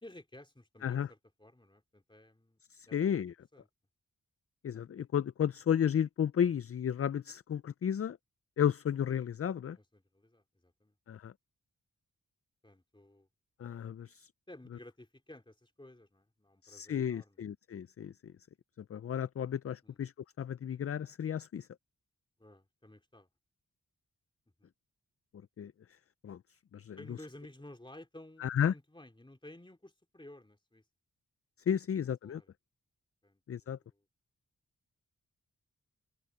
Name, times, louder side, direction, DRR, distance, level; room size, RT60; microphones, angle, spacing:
voice 1, 0.0-2.6 2.9-3.1 3.5-3.7 6.5-6.6 9.7-11.0 12.6-13.3 14.5-17.5 19.8-20.0 22.4-23.3 24.6-24.7 27.0-30.8 31.9-32.5 33.2-34.0, left 1 dB, 15° left, 2.8 m, -54 dB
voice 2, 2.7-3.3 4.6-8.2 8.6-9.8 11.1-11.3 13.6-14.3 16.6-18.3 18.9-21.7 25.6-25.7 26.2-26.4 26.7-27.2 28.4-28.7 31.7-32.4 33.5-33.8, left 8 dB, 45° left, 0.4 m, -33 dB
open air
wide cardioid pair, 75°, 34 cm